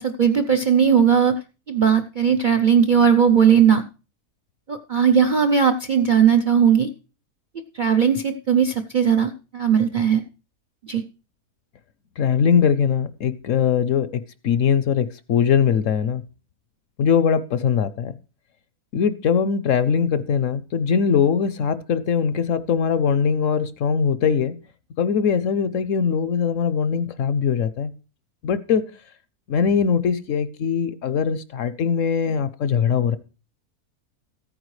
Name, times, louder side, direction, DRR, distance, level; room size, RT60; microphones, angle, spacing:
voice 1, 0.0-1.3 1.7-3.8 4.7-6.9 7.7-10.2 10.9-11.0, right 7 dB, 55° right, 6 dB, 0.5 m, -18 dB
voice 2, 12.2-14.1 14.4-16.2 17.0-18.1 18.9-24.5 25.0-27.9 28.4-28.8 29.5-33.2, left 7 dB, 65° left, 14 dB, 0.9 m, -21 dB
14.5 x 9.0 x 3.2 m, 0.34 s
omnidirectional pair, 1.6 m